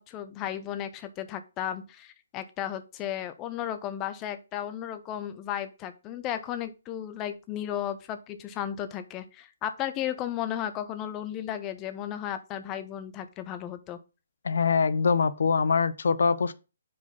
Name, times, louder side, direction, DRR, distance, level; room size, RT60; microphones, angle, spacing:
voice 1, 0.0-14.0, left 10 dB, 20° left, 0.5 m, -34 dB
voice 2, 14.4-16.5, left 5 dB, 70° left, 0.5 m, -23 dB
5.0 x 3.9 x 5.6 m
hypercardioid pair, 155°, 0 cm